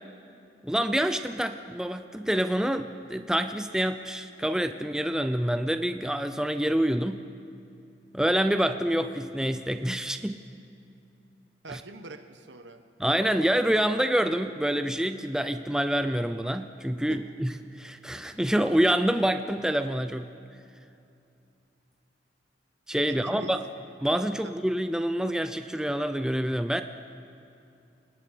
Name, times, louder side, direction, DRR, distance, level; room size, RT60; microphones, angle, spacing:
voice 1, 0.6-7.2 8.1-10.4 11.7-11.8 13.0-20.3 22.9-23.6 24.0-26.8, right 1 dB, 5° right, 8 dB, 0.5 m, -27 dB
voice 2, 11.6-12.8 17.0-17.3 23.1-23.7, right 2 dB, 80° right, 8 dB, 1.3 m, -43 dB
30.0 x 19.0 x 5.1 m, 2.6 s
head